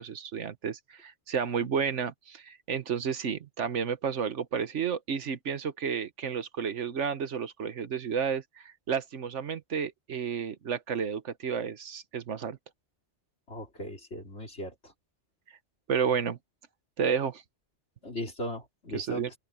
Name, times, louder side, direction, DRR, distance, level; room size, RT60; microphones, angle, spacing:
voice 1, 0.0-12.6 15.9-16.4 17.0-17.4 18.9-19.3, right 7 dB, 85° right, 1.4 m, -31 dB
voice 2, 13.5-14.7 18.0-19.4, equal, 70° left, 4.7 m, -38 dB
open air
omnidirectional pair, 1.2 m